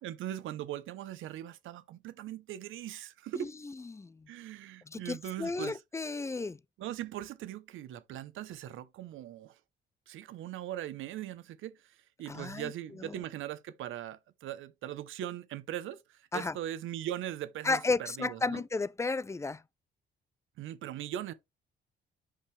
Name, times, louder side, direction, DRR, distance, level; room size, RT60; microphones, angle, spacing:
voice 1, 0.0-3.5 4.3-5.8 6.8-9.6 10.1-18.6 20.6-21.3, right 12 dB, 85° right, 0.9 m, -40 dB
voice 2, 3.4-4.3 4.9-6.6 12.3-12.7 13.0-13.1 16.3-16.6 17.6-19.6, left 3 dB, 15° left, 0.4 m, -33 dB
8.6 x 5.3 x 3.3 m
cardioid pair, 90°, 20 cm